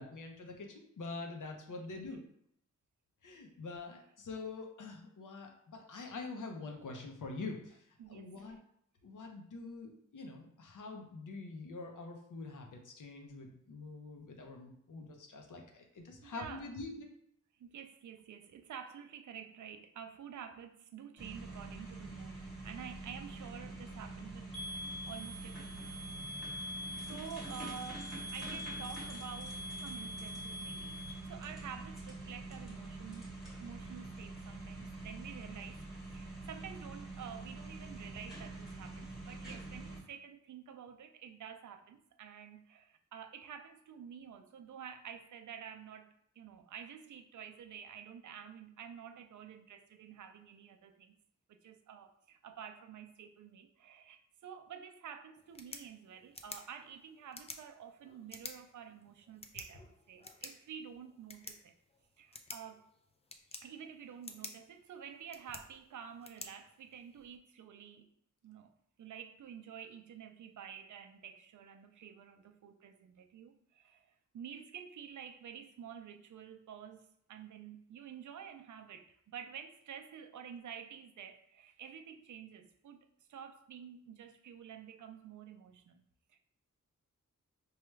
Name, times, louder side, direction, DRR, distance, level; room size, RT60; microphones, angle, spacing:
voice 1, 0.0-2.2 3.2-8.6 9.0-17.1, left 3 dB, 75° left, 2 dB, 0.7 m, -45 dB
voice 2, 8.0-8.6 16.2-16.7 17.6-24.6 25.1-25.9 26.2-26.5 27.0-31.0 31.3-35.8 36.1-51.1 51.5-61.7 62.2-62.8 63.6-68.1 68.4-86.4, right 8 dB, 70° right, 6 dB, 0.4 m, -50 dB
sound 1, 21.2-40.0, right 2 dB, ahead, 1.2 m, -46 dB
sound 2, 24.5-31.1, left 1 dB, 40° left, 0.8 m, -44 dB
sound 3, 55.4-67.4, left 3 dB, 20° left, 0.4 m, -52 dB
4.8 x 2.3 x 3.1 m, 0.70 s
wide cardioid pair, 85°, 31 cm